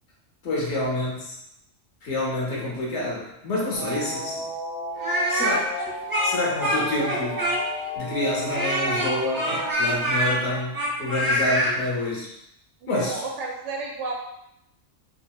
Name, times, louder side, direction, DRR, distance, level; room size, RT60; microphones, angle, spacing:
voice 1, 0.4-1.3 2.0-4.5 5.3-5.8 6.2-7.6 8.0-12.3 12.9-13.2, left 2 dB, 65° left, -4 dB, 1.1 m, -28 dB
sound 1, 3.7-9.7, equal, 40° left, 0.6 m, -33 dB
Speech, 5.0-7.9 8.5-11.7, equal, 25° right, 0.6 m, -25 dB
voice 2, 12.8-14.1, right 3 dB, 70° right, -1 dB, 0.9 m, -32 dB
2.9 x 2.7 x 2.2 m, 0.81 s
omnidirectional pair, 1.3 m